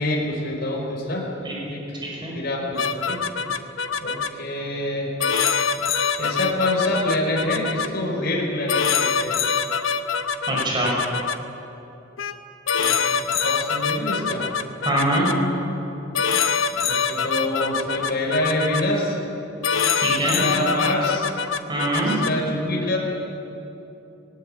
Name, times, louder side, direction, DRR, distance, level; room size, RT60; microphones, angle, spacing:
voice 1, 0.0-1.2 1.7-1.8 2.3-3.3 4.0-5.1 6.2-9.3 12.8-13.0 13.4-14.5 16.8-19.2 20.0-21.3 21.9-23.0, left 1 dB, 55° left, -1 dB, 5.0 m, -26 dB
voice 2, 1.9-2.3 10.5-10.9 14.8-15.3 20.0-20.4 21.7-22.2, right 1 dB, 25° right, -3 dB, 5.6 m, -24 dB
sound 1, 2.8-4.3 5.2-7.9 8.7-11.4 12.2-12.4 12.7-15.3 16.1-18.8 19.6-22.3, left 6 dB, 85° left, 0.9 m, -24 dB
19.5 x 19.5 x 8.7 m, 2.9 s
head